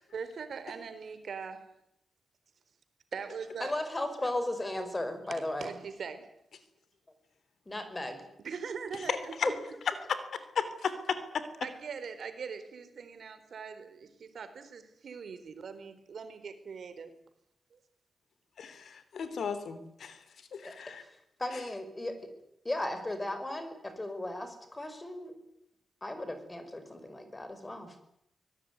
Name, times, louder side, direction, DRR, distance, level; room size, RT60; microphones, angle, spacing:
voice 1, 0.1-1.7 3.1-3.7 5.6-6.3 8.4-9.3 11.6-17.1 17.7-17.8, right 6 dB, 65° right, 10 dB, 4.1 m, -41 dB
voice 2, 3.6-5.7 7.7-8.2 9.4-9.5 20.6-20.7 21.4-22.3 22.7-25.3 26.0-27.9, left 1 dB, 20° left, 9 dB, 5.3 m, -36 dB
voice 3, 9.1-9.5 10.3-11.4 18.6-20.2 20.5-21.0 21.5-21.6, left 6 dB, 75° left, 13 dB, 3.2 m, -35 dB
24.5 x 19.5 x 9.6 m, 0.77 s
wide cardioid pair, 120°, 0 cm